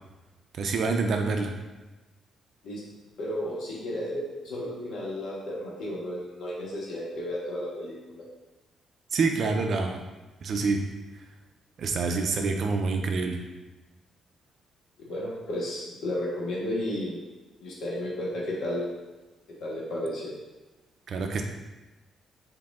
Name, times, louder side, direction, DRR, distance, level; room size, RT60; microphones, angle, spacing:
voice 1, 0.5-1.5 9.1-10.0 10.4-10.8 11.8-13.4 21.1-21.4, right 4 dB, 50° right, 4 dB, 0.4 m, -26 dB
voice 2, 3.2-8.2 15.0-17.2 17.6-18.9 19.6-20.3, left 1 dB, 70° left, -5 dB, 1.4 m, -33 dB
4.9 x 2.7 x 3.5 m, 1.1 s
cardioid pair, 155°, 0 cm